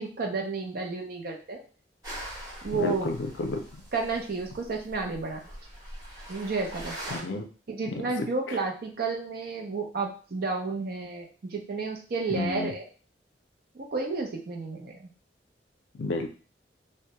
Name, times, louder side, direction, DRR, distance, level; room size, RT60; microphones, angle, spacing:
voice 1, 0.0-1.6 2.6-3.1 3.9-5.4 6.3-7.2 7.7-12.9 13.7-15.1, right 4 dB, 55° right, 1 dB, 0.5 m, -31 dB
sound 1, 2.0-7.2, right 1 dB, 20° right, 1.1 m, -42 dB
voice 2, 2.8-3.6 7.1-7.4 7.9-8.1 12.3-12.7 16.0-16.3, left 2 dB, 75° left, 6 dB, 0.4 m, -30 dB
2.2 x 2.1 x 2.8 m, 0.38 s
head